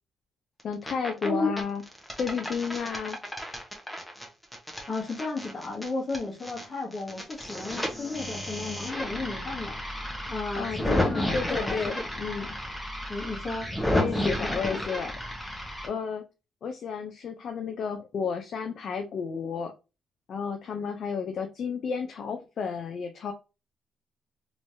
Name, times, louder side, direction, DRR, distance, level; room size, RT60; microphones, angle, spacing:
voice 1, 0.6-1.8 2.2-3.2 10.6-12.5 13.9-15.1 15.8-16.2 16.6-19.7 20.3-23.3, left 6 dB, 60° left, 0.6 m, -32 dB
sound 1, 0.6-1.3 1.6-6.6 6.9-15.9, equal, 10° left, 1.2 m, -32 dB
voice 2, 1.2-1.5 4.9-9.8 10.3-11.8 12.3-12.5 13.1-13.7 14.0-14.8, left 3 dB, 35° left, 1.4 m, -33 dB
3.1 x 3.1 x 2.7 m
cardioid pair, 90°, 0 cm